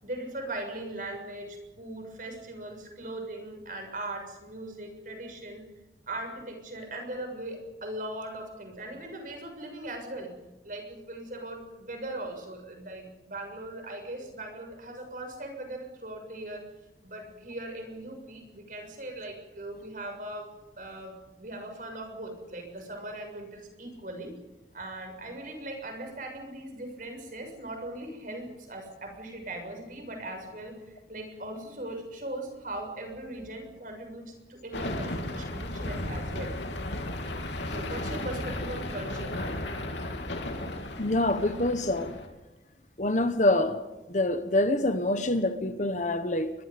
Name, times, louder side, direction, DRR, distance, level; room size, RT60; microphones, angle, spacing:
voice 1, 0.0-5.7 6.1-10.3 10.6-16.7 17.0-20.5 20.8-24.3 24.7-36.5 37.7-39.4, right 1 dB, 45° right, 6.7 m, -39 dB
sound 1, 34.7-42.3, left 1 dB, 80° left, 3.4 m, -34 dB
voice 2, 41.0-42.2 43.0-43.8 44.1-46.5, left 1 dB, 40° left, 1.4 m, -26 dB
28.5 x 23.5 x 5.3 m
head